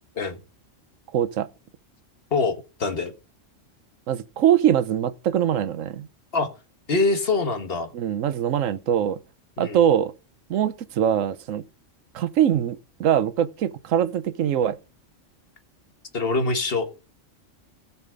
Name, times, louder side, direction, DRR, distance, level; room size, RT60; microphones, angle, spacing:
voice 1, 1.1-1.5 4.1-6.1 7.9-9.2 9.6-10.1 10.5-11.6 12.1-14.8, right 10 dB, 90° right, 1.1 m, -22 dB
voice 2, 2.3-3.1 6.3-6.5 6.9-7.9 9.6-9.8 16.1-16.9, left 3 dB, 50° left, 1.6 m, -24 dB
17.5 x 5.9 x 3.8 m
omnidirectional pair, 1.3 m